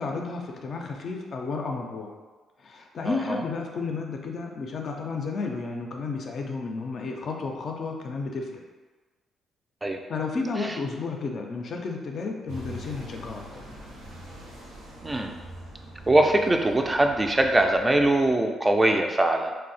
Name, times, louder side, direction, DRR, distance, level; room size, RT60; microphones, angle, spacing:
voice 1, 0.0-2.1 2.6-8.6 10.1-13.6, left 4 dB, 55° left, 1 dB, 0.4 m, -32 dB
voice 2, 3.1-3.4 9.8-10.0 10.6-10.8 15.0-15.3 16.1-19.6, right 1 dB, 20° right, 3 dB, 0.3 m, -22 dB
sound 1, 12.5-18.3, equal, 80° right, 0.8 m, -43 dB
2.6 x 2.1 x 3.9 m, 1.3 s
cardioid pair, 90°, 0 cm